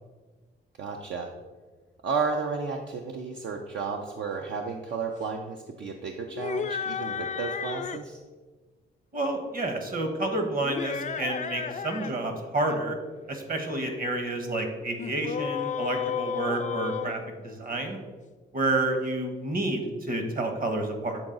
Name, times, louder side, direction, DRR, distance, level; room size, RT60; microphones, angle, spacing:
voice 1, 0.8-1.3 2.0-8.2, right 5 dB, 65° right, 2 dB, 0.6 m, -32 dB
sound 1, 6.3-8.1 10.6-12.1 12.4-12.8 15.0-17.9, left 7 dB, 40° left, 0.4 m, -33 dB
voice 2, 9.1-13.0 13.3-18.0 18.5-21.2, right 2 dB, 45° right, 5 dB, 1.2 m, -29 dB
7.3 x 3.9 x 3.9 m, 1.4 s
cardioid pair, 65°, 20 cm